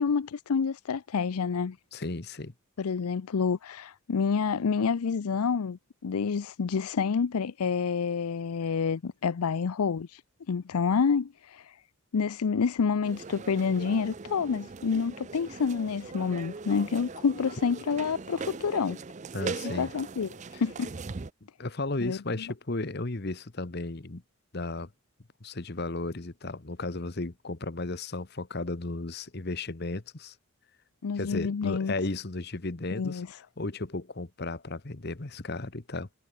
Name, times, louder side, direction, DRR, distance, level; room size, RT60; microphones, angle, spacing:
voice 1, 0.0-1.8 2.8-10.2 10.5-11.7 12.1-19.0 19.7-20.3 20.6-20.9 22.0-22.2 31.0-31.9 32.9-33.3, left 5 dB, 90° left, 0.5 m, -28 dB
voice 2, 1.9-2.5 19.3-19.9 20.5-20.6 21.6-24.2 24.5-24.9 25.4-30.3 31.2-33.2 33.6-36.1, left 2 dB, 45° left, 1.1 m, -34 dB
sound 1, 13.0-21.3, right 4 dB, 35° right, 0.5 m, -40 dB
head